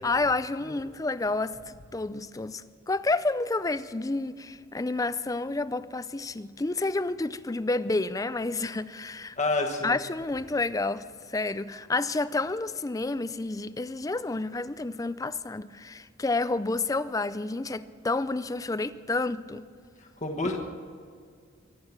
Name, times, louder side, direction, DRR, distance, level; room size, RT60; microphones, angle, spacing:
voice 1, 0.0-9.4 9.8-19.6, left 3 dB, 15° left, 15 dB, 0.4 m, -30 dB
voice 2, 9.4-10.0 20.2-20.6, left 2 dB, 35° left, 2 dB, 1.3 m, -28 dB
23.5 x 8.5 x 6.0 m, 2.1 s
head